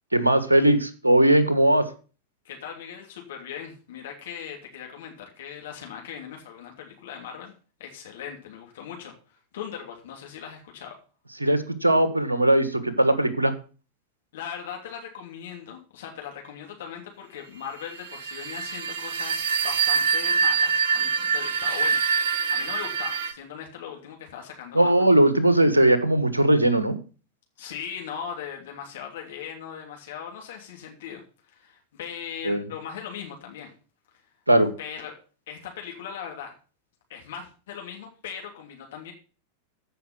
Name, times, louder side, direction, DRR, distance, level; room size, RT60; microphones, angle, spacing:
voice 1, 0.1-1.8 11.4-13.5 24.7-27.0 32.4-32.6 34.5-34.7, right 1 dB, 80° right, 13 dB, 1.5 m, -19 dB
voice 2, 2.4-7.5 7.8-11.0 14.3-24.9 27.6-33.7 34.8-35.1 35.5-36.5 37.1-39.1, left 8 dB, 60° left, 1 dB, 2.8 m, -39 dB
sound 1, 18.0-23.3, right 6 dB, 60° right, 1.1 m, -25 dB
14.5 x 5.8 x 6.0 m, 0.37 s
figure-of-eight pair, 90°, 0 cm